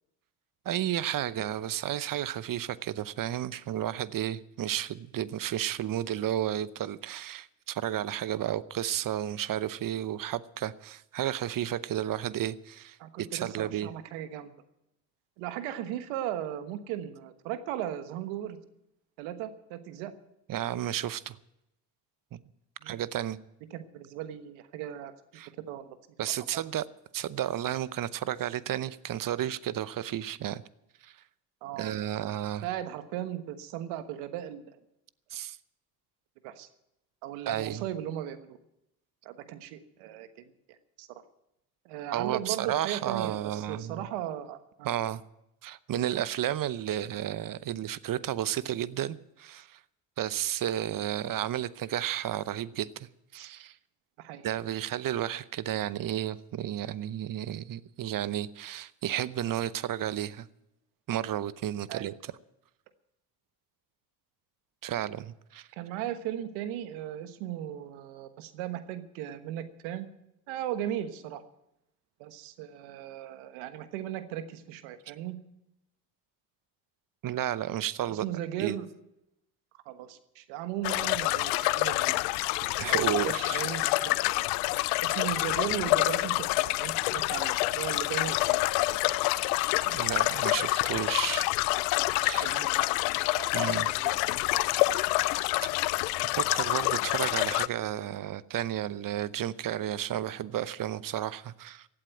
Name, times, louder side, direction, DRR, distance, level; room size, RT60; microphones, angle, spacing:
voice 1, 0.6-13.9 20.5-21.4 22.3-22.4 22.8-23.4 25.3-25.5 26.2-26.9 27.1-30.6 31.0-31.1 31.8-32.7 35.3-35.6 37.5-37.8 42.1-44.1 44.8-45.2 45.6-49.8 50.2-53.7 54.4-60.5 61.1-62.3 64.8-65.7 77.2-78.2 78.6-78.8 81.5-81.8 82.8-83.6 89.9-91.5 92.2-92.5 93.5-93.9 95.6-95.7 96.2-101.9, right 11 dB, 45° right, 0.8 m, -32 dB
voice 2, 13.0-14.5 15.4-18.6 19.2-20.1 22.8-23.0 23.7-26.0 31.6-31.9 32.6-34.6 36.4-36.7 37.2-38.6 39.2-40.3 41.0-41.1 41.8-45.0 54.2-54.5 61.9-62.1 65.8-70.1 70.5-71.4 72.2-75.4 78.1-78.9 79.8-82.2 82.8-84.4 85.0-88.6 92.4-92.8 93.3-94.7, right 11 dB, 80° right, 1.4 m, -37 dB
sound 1, 80.8-97.7, left 21 dB, 85° left, 0.5 m, -27 dB
16.0 x 8.6 x 9.0 m
supercardioid pair, 70°, 46 cm